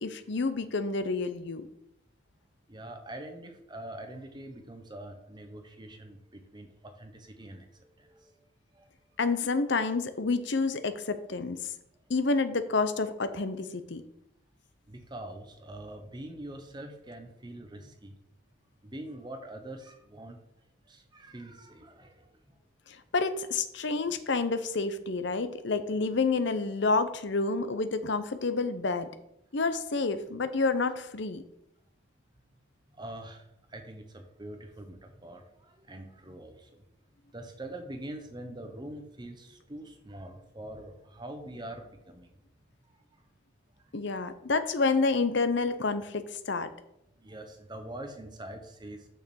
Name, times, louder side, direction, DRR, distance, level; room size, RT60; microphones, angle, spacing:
voice 1, 0.0-1.7 9.2-11.7 12.1-14.0 22.9-29.1 29.5-31.4 43.9-46.7, left 3 dB, 55° left, 11 dB, 0.7 m, -29 dB
voice 2, 2.7-8.4 8.7-8.9 14.9-18.2 18.8-20.4 20.9-22.3 32.9-36.8 37.3-42.3 42.9-43.0 47.2-49.1, right 1 dB, 20° right, 5 dB, 1.0 m, -44 dB
6.7 x 6.5 x 6.3 m, 0.81 s
head